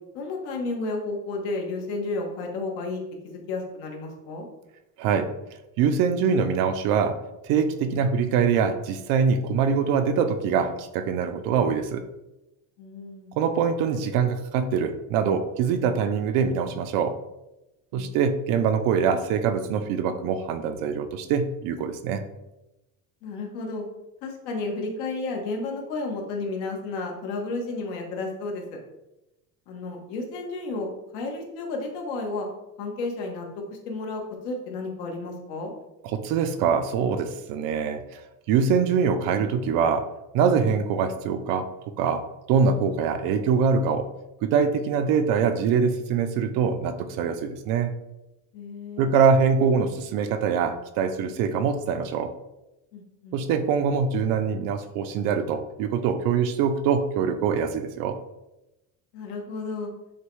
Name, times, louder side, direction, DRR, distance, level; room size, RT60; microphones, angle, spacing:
voice 1, 0.1-4.5 12.8-13.3 17.9-18.1 23.2-23.8 24.2-28.8 29.7-30.9 31.1-32.5 32.8-35.7 48.5-49.1 52.9-53.4 59.1-59.9, left 3 dB, 75° left, 1 dB, 1.1 m, -32 dB
voice 2, 5.0-5.3 5.8-12.1 13.3-17.2 17.9-22.2 36.0-38.2 38.5-40.1 40.3-41.7 42.0-44.1 44.4-47.9 49.0-52.3 53.3-58.2, right 6 dB, 60° right, 10 dB, 0.5 m, -24 dB
6.4 x 2.2 x 3.1 m, 0.96 s
cardioid pair, 150°, 40 cm